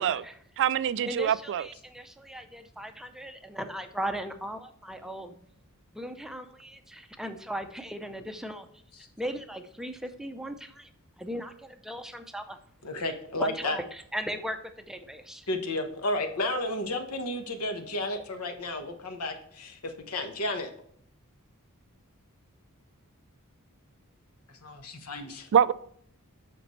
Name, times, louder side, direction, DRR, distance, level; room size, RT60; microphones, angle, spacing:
voice 1, 0.0-0.4 1.0-5.3 5.9-8.7 9.2-10.9 11.2-12.6 13.4-15.5, equal, ahead, 7 dB, 0.5 m, -38 dB
voice 2, 0.6-1.7 25.5-25.7, right 8 dB, 55° right, 17 dB, 0.3 m, -24 dB
voice 3, 12.8-13.8 15.5-20.7 24.5-25.5, left 1 dB, 75° left, 6 dB, 1.2 m, -32 dB
7.9 x 6.0 x 3.2 m, 0.65 s
head